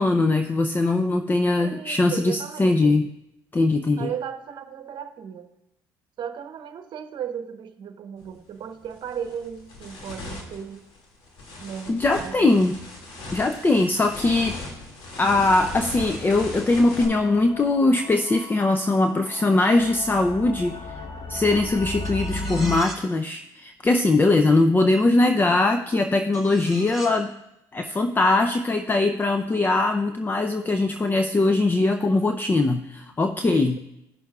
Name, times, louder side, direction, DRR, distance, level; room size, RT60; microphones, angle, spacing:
voice 1, 0.0-3.1 3.5-4.1 11.9-12.8 13.3-14.6 15.2-21.0 21.3-27.3 27.7-33.8, left 2 dB, 20° left, 7 dB, 0.5 m, -21 dB
voice 2, 1.6-3.0 4.0-5.5 6.2-10.8 11.6-12.5, right 8 dB, 55° right, 8 dB, 1.0 m, -35 dB
sound 1, 8.2-8.4 8.8-17.0, left 2 dB, 65° left, 2.4 m, -38 dB
sound 2, 17.0-22.8, left 2 dB, 40° left, 1.1 m, -35 dB
sound 3, 22.0-23.2 24.9-25.0 26.3-27.3, right 2 dB, 5° right, 3.7 m, -39 dB
16.5 x 6.3 x 2.4 m, 0.87 s
supercardioid pair, 70°, 9 cm